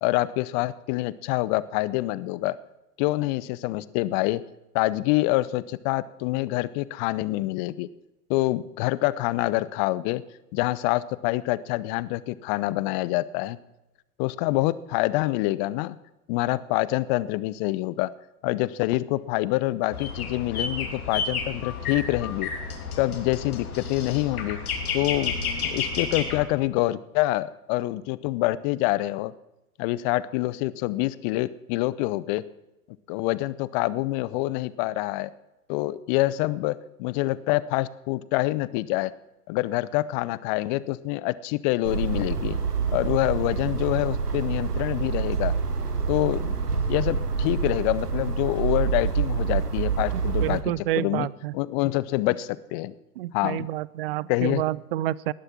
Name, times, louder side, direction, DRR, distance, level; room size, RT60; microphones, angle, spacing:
voice 1, 0.0-2.6 3.0-4.4 4.7-7.9 8.3-10.2 10.5-13.6 14.2-16.0 16.3-18.1 18.4-22.5 23.0-24.6 24.9-29.3 29.8-32.4 33.1-35.3 35.7-39.1 39.5-42.6 42.9-45.5 46.1-46.5 46.9-50.6 51.0-51.3 51.5-52.9 53.3-53.7 54.3-54.6, left 18 dB, 30° left, 18 dB, 0.6 m, -26 dB
sound 1, 19.9-26.5, left 5 dB, 70° left, 3.2 m, -31 dB
sound 2, 41.8-50.6, right 5 dB, 80° right, 1.7 m, -27 dB
voice 2, 50.4-51.5 53.2-55.3, right 14 dB, 40° right, 23 dB, 0.5 m, -28 dB
19.0 x 11.5 x 6.0 m, 0.98 s
figure-of-eight pair, 100°, 46 cm